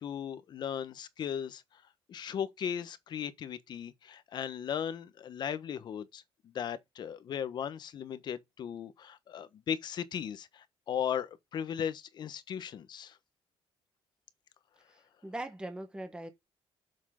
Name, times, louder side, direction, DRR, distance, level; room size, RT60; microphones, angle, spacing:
voice 1, 0.0-1.6 2.1-13.2, left 8 dB, 45° left, 1.1 m, -37 dB
voice 2, 14.9-16.3, right 1 dB, 10° right, 1.3 m, -41 dB
7.6 x 6.5 x 3.8 m
cardioid pair, 150°, 10 cm